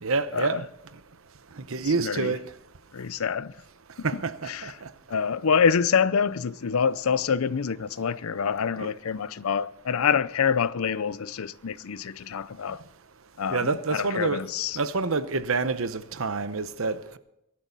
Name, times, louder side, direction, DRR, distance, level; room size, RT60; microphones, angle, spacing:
voice 1, 0.0-0.6 1.6-2.5 4.0-4.9 8.8-8.9 13.5-14.4 14.7-17.2, right 4 dB, 70° right, 0.9 m, -27 dB
voice 2, 2.0-2.3 2.9-3.5 4.5-4.7 5.1-12.8 13.4-14.8, left 6 dB, 75° left, 0.5 m, -26 dB
22.0 x 11.0 x 4.0 m
head